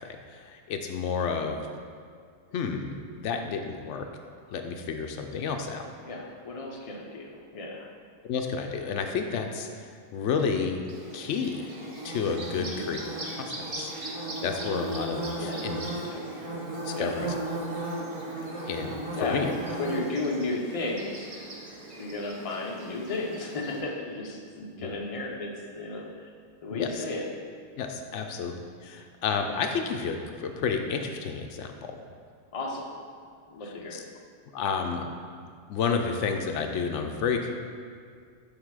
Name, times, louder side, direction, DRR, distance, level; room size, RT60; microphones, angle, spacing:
voice 1, 0.0-1.7 2.5-3.0 3.2-4.1 4.5-5.9 8.2-10.8 11.1-11.6 12.0-13.0 13.4-13.9 14.4-15.8 16.8-17.3 18.7-19.6 24.8-24.9 26.7-27.0 27.8-28.5 28.8-32.0 33.6-34.0 34.5-35.0 35.7-37.5, left 5 dB, 70° left, 5 dB, 0.9 m, -31 dB
voice 2, 6.0-7.9 12.5-12.9 15.4-16.3 16.9-17.2 19.1-19.4 19.8-21.3 22.0-26.3 26.6-27.2 32.5-32.9 33.5-34.0, left 2 dB, 35° left, -1 dB, 0.6 m, -34 dB
Bird / Buzz, 10.9-23.8, right 1 dB, 30° right, 0.7 m, -36 dB
6.7 x 3.5 x 4.7 m, 2.2 s
omnidirectional pair, 1.3 m